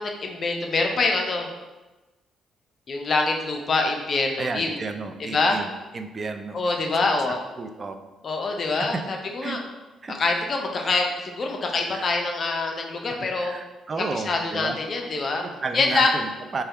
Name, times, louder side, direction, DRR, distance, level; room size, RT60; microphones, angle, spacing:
voice 1, 0.0-1.5 2.9-4.8 5.3-5.6 6.5-7.4 8.2-9.6 10.1-13.5 14.1-15.4 15.7-16.1, left 3 dB, 45° left, 2 dB, 0.6 m, -25 dB
voice 2, 4.4-6.6 7.6-8.0 8.8-9.0 9.4-9.6 10.0-10.5 11.9-12.0 13.4-14.8 15.6-16.6, right 4 dB, 40° right, 7 dB, 0.4 m, -32 dB
3.4 x 2.3 x 4.2 m, 1.1 s
cardioid pair, 90°, 0 cm